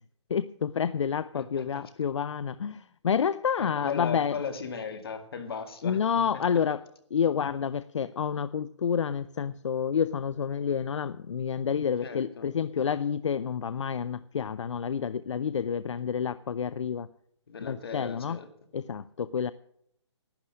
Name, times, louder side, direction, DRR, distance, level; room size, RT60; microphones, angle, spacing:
voice 1, 0.3-4.4 5.8-6.8 7.1-17.1 17.6-18.4 18.7-19.5, left 7 dB, 75° left, 17 dB, 0.5 m, -29 dB
voice 2, 1.3-1.8 3.6-6.0 6.3-6.6 12.0-12.5 17.5-18.5, left 6 dB, 55° left, 8 dB, 2.0 m, -37 dB
12.0 x 9.7 x 7.5 m, 0.70 s
hypercardioid pair, 170°, 15 cm